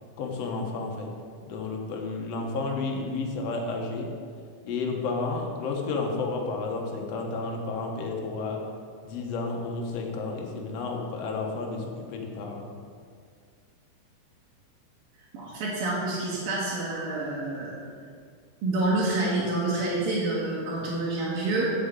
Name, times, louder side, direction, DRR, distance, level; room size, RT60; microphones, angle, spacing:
voice 1, 0.2-1.1 1.5-4.1 4.6-8.6 9.0-12.6, left 3 dB, 60° left, 1 dB, 1.9 m, -31 dB
voice 2, 15.3-17.7 18.6-21.7, right 2 dB, 85° right, -8 dB, 3.5 m, -28 dB
7.6 x 6.6 x 8.1 m, 2.1 s
omnidirectional pair, 4.0 m